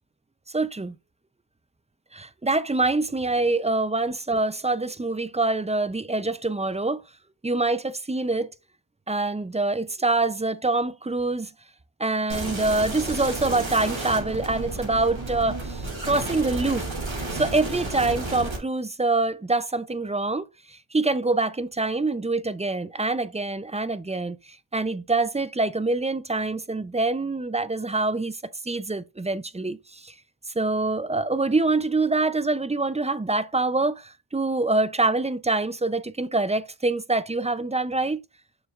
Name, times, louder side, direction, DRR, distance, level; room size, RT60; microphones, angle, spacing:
voice 1, 0.5-0.9 2.1-7.0 7.4-8.5 9.1-11.5 12.0-16.9 17.3-24.4 24.7-28.4 28.7-30.1 30.6-38.2, right 2 dB, 15° right, 0.4 m, -25 dB
sound 1, 12.3-18.6, right 2 dB, 70° right, 3.2 m, -32 dB
7.1 x 6.2 x 2.4 m
wide cardioid pair, 75°, 48 cm